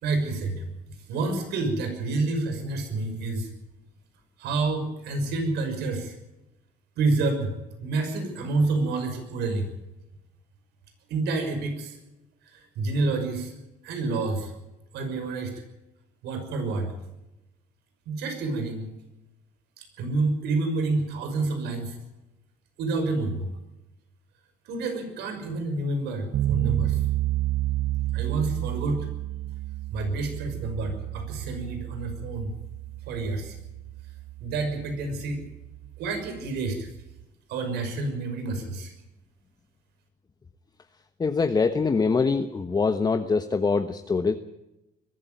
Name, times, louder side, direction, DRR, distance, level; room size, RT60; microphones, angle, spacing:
voice 1, 0.0-0.7 1.1-3.5 4.4-6.2 7.0-7.5 7.8-9.7 11.1-12.0 12.5-13.5 13.8-14.5 14.9-15.5 16.2-16.9 18.1-18.9 19.8-22.0 22.8-23.5 24.7-27.0 28.1-29.1 29.9-32.5 33.1-33.6 34.4-35.4 36.0-36.9 37.5-38.9, right 3 dB, 80° right, 6 dB, 6.0 m, -28 dB
sound 1, 26.3-37.2, right 15 dB, 60° right, 0.7 m, -31 dB
voice 2, 41.2-44.3, left 4 dB, 25° left, 8 dB, 1.2 m, -24 dB
22.0 x 14.0 x 9.1 m, 0.96 s
cardioid pair, 110°, 17 cm